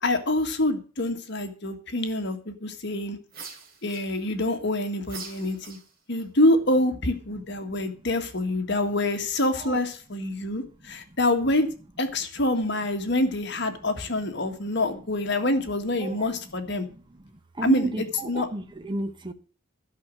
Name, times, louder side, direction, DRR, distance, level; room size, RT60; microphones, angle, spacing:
voice 1, 0.0-3.2 3.8-5.8 6.1-11.7 12.0-16.9 17.6-18.5, left 1 dB, 60° left, 1.7 m, -26 dB
sound 1, 3.3-4.5 5.0-6.2, right 5 dB, 50° right, 3.4 m, -43 dB
voice 2, 10.3-11.2 14.2-14.3 14.6-14.8 16.0-16.6 16.8-19.3, right 2 dB, 25° right, 0.9 m, -35 dB
12.5 x 6.3 x 7.6 m
head